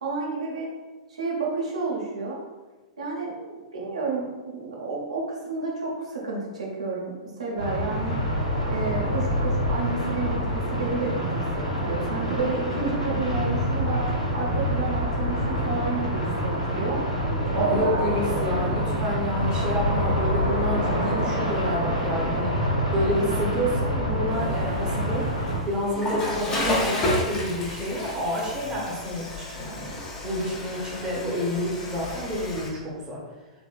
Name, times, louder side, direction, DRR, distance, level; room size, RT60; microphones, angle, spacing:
voice 1, 0.0-0.7 1.1-2.4 3.0-8.2 8.7-14.0 14.3-17.0 17.5-18.0, right 3 dB, 70° right, -3 dB, 0.8 m, -30 dB
sound 1, 7.6-25.6, equal, 90° left, 1.0 m, -26 dB
voice 2, 17.5-22.5 22.9-25.3 25.7-33.2, equal, 20° right, -3 dB, 0.8 m, -29 dB
Water / Toilet flush, 24.3-32.7, left 1 dB, 20° left, 0.8 m, -31 dB
3.5 x 3.1 x 2.3 m, 1.2 s
figure-of-eight pair, 100°, 4 cm